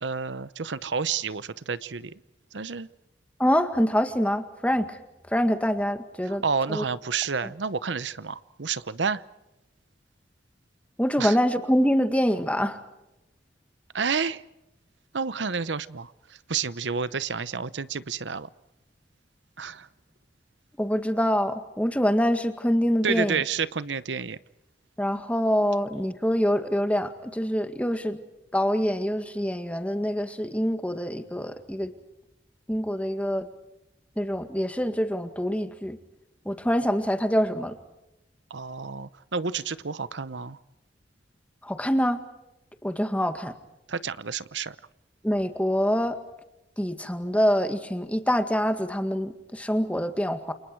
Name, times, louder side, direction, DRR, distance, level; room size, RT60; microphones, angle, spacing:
voice 1, 0.0-2.1 2.5-2.9 6.2-9.2 11.2-11.4 13.9-14.4 15.1-18.5 19.6-19.9 23.0-24.4 38.5-40.6 43.9-44.8, right 5 dB, 85° right, 16 dB, 0.9 m, -30 dB
voice 2, 3.4-5.0 5.3-6.4 6.7-6.8 11.0-12.8 20.8-23.4 25.0-28.2 28.5-31.9 32.7-33.5 34.2-36.0 36.5-37.7 41.6-42.2 42.8-43.5 45.2-46.2 46.8-50.5, equal, 10° left, 8 dB, 1.9 m, -25 dB
29.0 x 28.5 x 4.7 m, 0.93 s
head